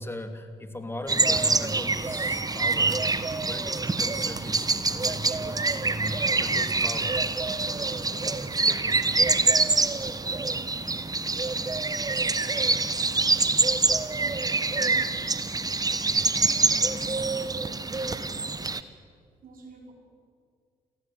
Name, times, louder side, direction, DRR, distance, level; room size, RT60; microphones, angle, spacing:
voice 1, 0.0-3.1 3.5-9.6, left 1 dB, 15° left, 7 dB, 2.9 m, -39 dB
sound 1, 1.1-18.8, right 3 dB, 20° right, 1.2 m, -25 dB
voice 2, 17.9-18.3 19.4-19.9, right 3 dB, 50° right, 1 dB, 5.2 m, -49 dB
29.0 x 18.5 x 7.7 m, 2.1 s
figure-of-eight pair, 45°, 18 cm